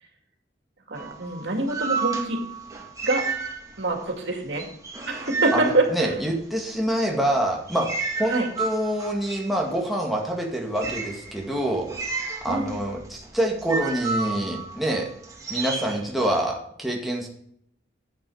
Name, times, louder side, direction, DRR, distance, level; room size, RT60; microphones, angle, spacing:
sound 1, 0.9-4.0 4.3-6.6 7.2-16.4, right 4 dB, 20° right, 2.2 m, -32 dB
voice 1, 0.9-2.4 3.0-3.2 3.8-4.6 5.0-6.1 8.3-8.5 12.5-12.8, right 2 dB, 75° right, 2 dB, 2.5 m, -25 dB
voice 2, 5.5-11.9 12.4-15.1 15.5-17.3, right 1 dB, ahead, -2 dB, 2.0 m, -26 dB
10.5 x 8.4 x 4.9 m, 0.69 s
head